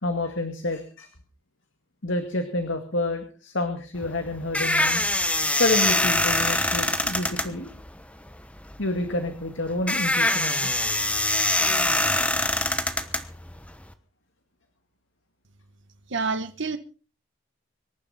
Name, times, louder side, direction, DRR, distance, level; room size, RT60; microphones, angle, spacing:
voice 1, 0.0-1.1 2.0-5.1 5.5-7.7 8.8-10.7, left 2 dB, 65° left, 2.1 m, -28 dB
sound 1, 3.9-13.9, left 1 dB, 5° left, 1.1 m, -24 dB
voice 2, 16.1-16.8, right 4 dB, 60° right, 1.2 m, -28 dB
24.5 x 11.0 x 4.2 m
head